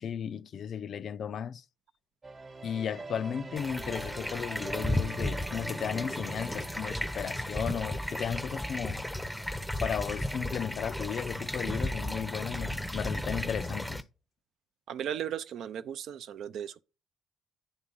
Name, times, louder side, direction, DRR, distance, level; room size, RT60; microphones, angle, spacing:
voice 1, 0.0-1.6 2.6-9.1 9.7-14.0, left 8 dB, 60° left, 0.3 m, -35 dB
sound 1, 2.2-8.8, right 3 dB, 35° right, 1.0 m, -45 dB
sound 2, 3.6-14.0, left 1 dB, 5° left, 0.6 m, -34 dB
voice 2, 14.9-16.8, right 9 dB, 75° right, 0.4 m, -36 dB
9.6 x 3.7 x 5.4 m
cardioid pair, 90°, 0 cm